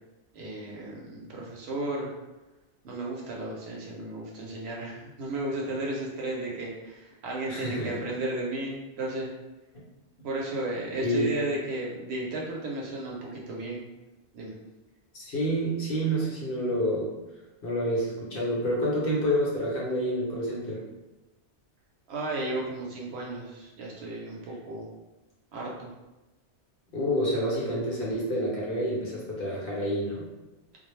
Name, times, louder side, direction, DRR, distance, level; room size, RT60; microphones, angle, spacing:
voice 1, 0.3-2.1 2.8-9.3 10.2-13.8 14.3-14.5 22.1-24.9 25.5-25.9, right 2 dB, 70° right, -3 dB, 0.8 m, -34 dB
voice 2, 7.5-8.0 9.7-9.8 11.0-11.3 15.1-17.1 17.6-20.8 26.9-30.3, equal, 60° left, -4 dB, 0.8 m, -28 dB
2.2 x 2.0 x 3.0 m, 1.0 s
omnidirectional pair, 1.2 m